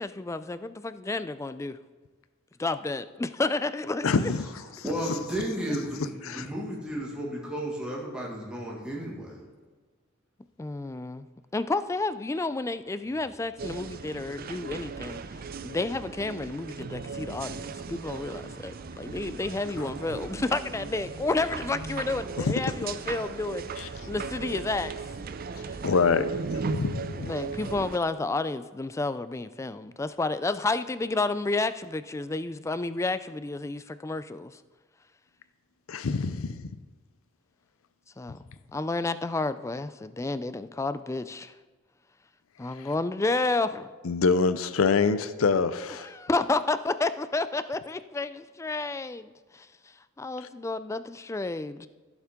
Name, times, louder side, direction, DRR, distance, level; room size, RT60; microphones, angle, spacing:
voice 1, 0.0-1.8 2.6-4.3 10.6-11.3 11.5-15.2 15.6-24.9 25.6-25.8 27.3-34.6 38.2-38.4 38.7-41.5 42.6-43.9 46.0-51.9, left 3 dB, 15° left, 13 dB, 0.3 m, -31 dB
voice 2, 4.0-4.4 6.2-6.5 23.8-23.9 25.8-27.3 35.9-36.6 44.0-46.1, left 4 dB, 80° left, 13 dB, 0.5 m, -25 dB
voice 3, 4.8-9.4, right 1 dB, 5° right, -5 dB, 1.9 m, -33 dB
sound 1, 13.6-28.0, right 4 dB, 45° right, 0.5 m, -37 dB
15.0 x 7.2 x 3.6 m, 1.3 s
head